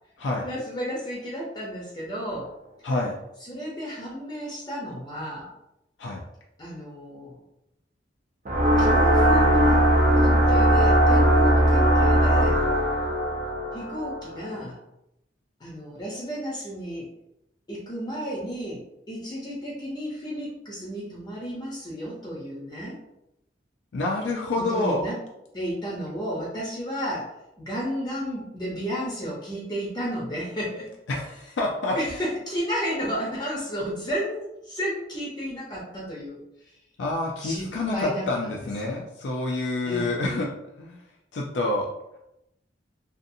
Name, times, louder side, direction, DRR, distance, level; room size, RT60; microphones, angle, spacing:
voice 1, 0.4-2.5 3.4-5.5 6.6-7.4 8.8-9.9 10.1-12.6 13.7-14.8 15.6-17.1 17.7-23.0 24.7-25.2 25.5-27.3 27.6-30.9 31.9-36.4 37.4-38.5 38.8-39.0 39.8-40.1, equal, 25° left, -5 dB, 0.6 m, -32 dB
voice 2, 2.8-3.1 6.0-6.2 23.9-25.1 31.1-32.0 37.0-40.5 40.8-41.0 41.3-41.9, left 2 dB, 80° left, -1 dB, 0.4 m, -27 dB
sound 1, 8.4-14.5, right 1 dB, 45° right, 0.6 m, -19 dB
2.6 x 2.4 x 2.6 m, 0.84 s
head